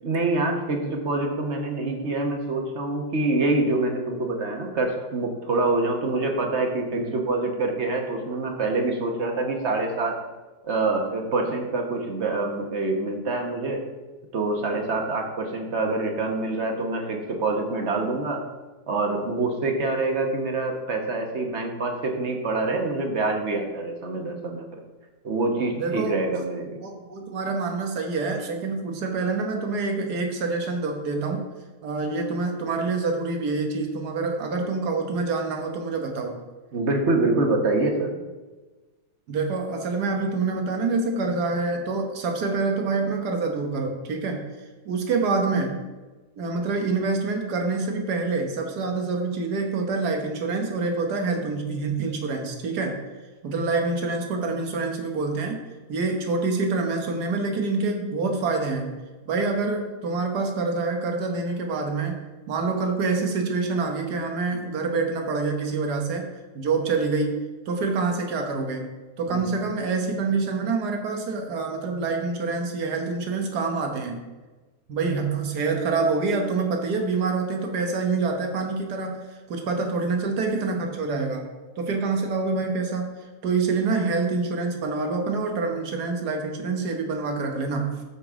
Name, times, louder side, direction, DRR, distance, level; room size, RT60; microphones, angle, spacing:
voice 1, 0.0-10.2 10.6-13.8 14.3-18.4 18.9-24.8 25.2-26.8 36.7-38.1 69.3-69.5, right 2 dB, 50° right, 3 dB, 1.3 m, -26 dB
voice 2, 25.8-26.2 26.8-31.4 31.8-36.4 39.3-44.5 44.9-45.8 46.4-53.0 53.4-55.6 55.9-59.0 59.3-62.2 62.5-66.3 66.6-68.9 69.2-74.2 74.9-81.4 81.8-83.1 83.4-88.0, right 3 dB, 85° right, 2 dB, 1.7 m, -26 dB
12.5 x 5.0 x 3.7 m, 1.2 s
omnidirectional pair, 1.7 m